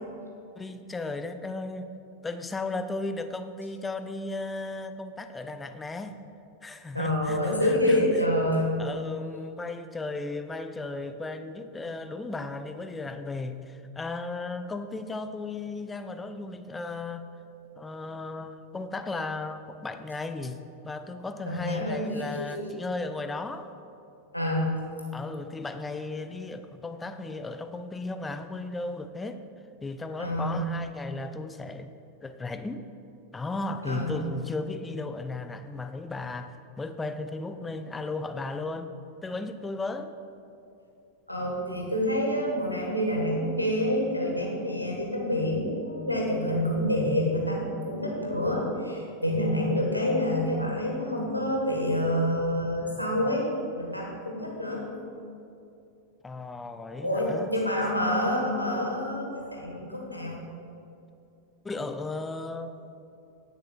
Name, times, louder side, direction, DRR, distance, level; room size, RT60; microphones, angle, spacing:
voice 1, 0.6-2.0 2.2-6.2 6.6-8.2 8.8-17.3 17.8-23.7 25.1-29.4 29.8-31.9 32.2-32.8 33.3-38.9 39.2-40.1 56.2-57.5 61.6-62.8, left 3 dB, 10° left, 9 dB, 0.5 m, -35 dB
voice 2, 6.9-8.7 21.5-22.7 24.3-24.7 30.2-30.6 33.8-34.2 41.3-53.5 53.7-54.8 57.0-60.4, left 1 dB, 90° left, -2 dB, 1.6 m, -27 dB
16.5 x 6.7 x 2.4 m, 2.7 s
figure-of-eight pair, 90°, 0 cm